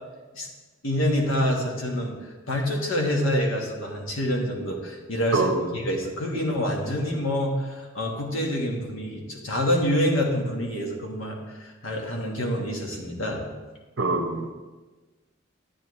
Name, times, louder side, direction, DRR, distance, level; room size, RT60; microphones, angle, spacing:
voice 1, 0.8-2.1 2.5-13.4, equal, 75° left, 0 dB, 1.6 m, -27 dB
voice 2, 5.3-5.6 14.0-14.5, right 2 dB, 70° right, 5 dB, 0.9 m, -24 dB
10.5 x 8.8 x 3.2 m, 1.3 s
head